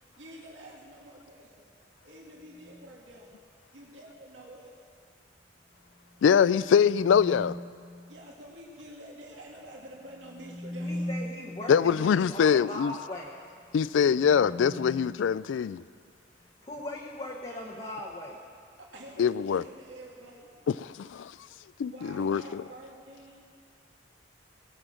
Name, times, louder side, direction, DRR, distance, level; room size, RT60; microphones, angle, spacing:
voice 1, 0.0-1.7 2.0-3.3 3.7-4.7 8.1-11.1 18.8-20.5 21.8-23.4, right 1 dB, 85° right, -3 dB, 2.5 m, -48 dB
sound 1, 2.5-3.0 6.1-7.9 10.1-11.8 13.8-16.1, equal, 55° left, 1.8 m, -40 dB
voice 2, 6.2-7.5 11.7-12.9 13.7-15.8 19.2-19.6 20.8-21.3 21.8-22.6, left 7 dB, 85° left, 19 dB, 0.3 m, -23 dB
voice 3, 10.8-13.3 16.6-18.4, left 1 dB, 30° left, -2 dB, 1.1 m, -39 dB
19.5 x 7.0 x 7.5 m, 2.3 s
head